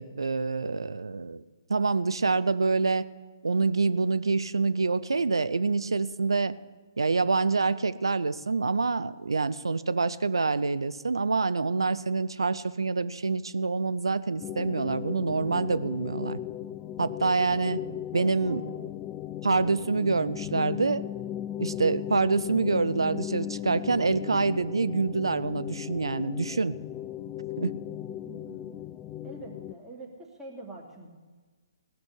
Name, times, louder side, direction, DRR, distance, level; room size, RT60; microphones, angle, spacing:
voice 1, 0.0-1.4 1.7-3.0 3.4-6.5 7.0-16.4 17.0-17.8 18.1-18.6 19.4-21.0 21.6-26.8 27.6-27.7, right 4 dB, 80° right, 13 dB, 0.7 m, -26 dB
sound 1, 14.4-29.7, left 11 dB, 20° left, 0.4 m, -37 dB
voice 2, 18.1-18.6 28.2-28.7 29.2-31.1, right 2 dB, 10° right, -4 dB, 3.1 m, -45 dB
18.0 x 6.2 x 9.8 m, 1.4 s
figure-of-eight pair, 135°, 2 cm